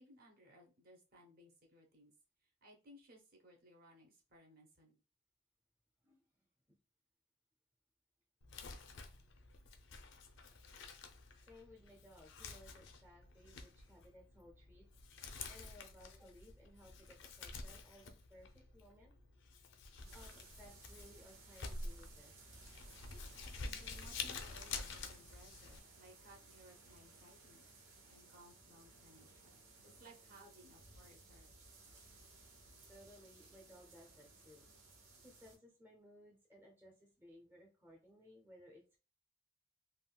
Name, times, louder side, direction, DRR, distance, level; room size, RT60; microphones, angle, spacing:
voice 1, 0.0-2.1 2.4-5.0 23.6-27.6 28.1-31.5, equal, 45° right, 0 dB, 0.8 m, -62 dB
voice 2, 6.0-6.8 11.3-14.9 15.5-19.1 20.1-22.4 32.9-34.6 35.2-39.0, equal, 10° right, -1 dB, 0.6 m, -61 dB
Crumpling crinkling, 8.4-25.8, left 4 dB, 60° left, 0.4 m, -49 dB
sound 1, 20.0-35.6, right 3 dB, 90° right, 0.9 m, -60 dB
3.5 x 2.3 x 2.2 m, 0.32 s
head